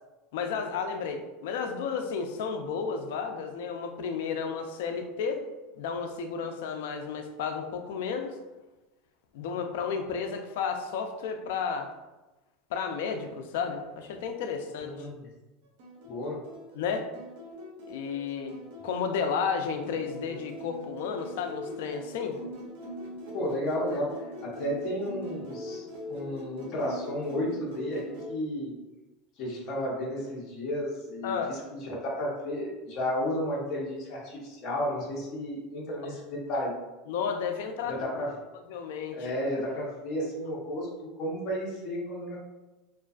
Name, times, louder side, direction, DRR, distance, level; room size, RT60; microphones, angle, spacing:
voice 1, 0.3-5.4 5.8-8.3 9.3-11.9 12.7-15.0 16.8-17.1 17.9-18.5 18.8-22.4 31.2-31.5 37.1-38.1 38.7-39.3, left 6 dB, 80° left, 5 dB, 0.3 m, -32 dB
voice 2, 14.8-15.3 16.0-16.4 23.3-28.7 29.4-36.7 37.9-38.4 39.1-42.4, equal, 45° left, -3 dB, 0.7 m, -33 dB
sound 1, 15.8-28.3, left 1 dB, 75° right, 0.6 m, -42 dB
2.4 x 2.3 x 2.3 m, 1.1 s
supercardioid pair, 145°, 0 cm